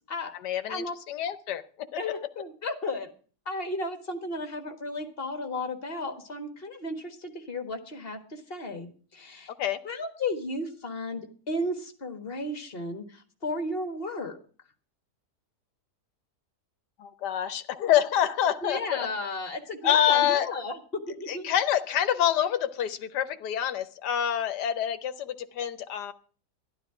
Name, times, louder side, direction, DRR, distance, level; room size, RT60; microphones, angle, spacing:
voice 1, 0.4-1.9 9.6-9.8 17.0-19.1 19.8-20.5 21.3-26.1, left 10 dB, 90° left, 11 dB, 1.4 m, -27 dB
voice 2, 2.0-3.1 3.4-9.5 9.8-11.2 11.5-14.4 18.6-20.8 21.2-21.5, left 2 dB, 35° left, 6 dB, 1.7 m, -34 dB
12.5 x 11.5 x 4.9 m, 0.41 s
omnidirectional pair, 1.7 m